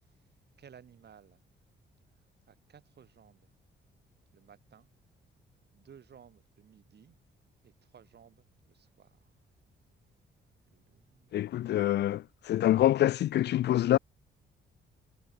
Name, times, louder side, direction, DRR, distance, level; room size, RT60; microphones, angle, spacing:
voice 1, 0.0-1.4 2.1-3.5 4.3-4.9 5.7-7.2 7.6-9.4 10.7-11.9, right 8 dB, 55° right, 3.0 m, -58 dB
voice 2, 11.3-14.0, left 13 dB, 60° left, 0.4 m, -26 dB
cardioid pair, 70°, 20 cm